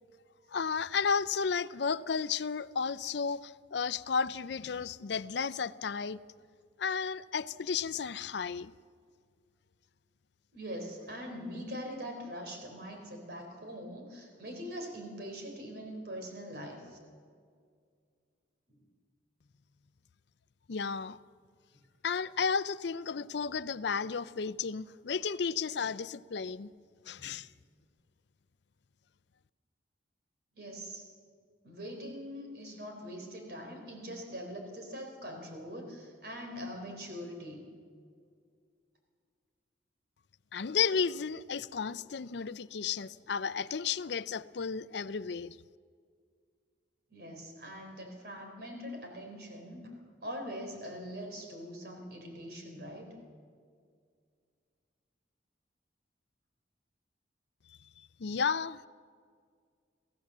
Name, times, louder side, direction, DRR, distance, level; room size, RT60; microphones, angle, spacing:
voice 1, 0.5-6.2 6.8-8.7 20.7-21.2 22.0-26.7 27.1-27.5 40.5-45.6 58.2-58.8, left 6 dB, 65° left, 0.5 m, -33 dB
voice 2, 10.5-17.0 18.7-18.8 27.2-27.3 30.5-31.0 31.6-37.7 47.1-49.9 50.2-53.2, equal, 55° right, 4.1 m, -43 dB
23.0 x 15.5 x 7.3 m
head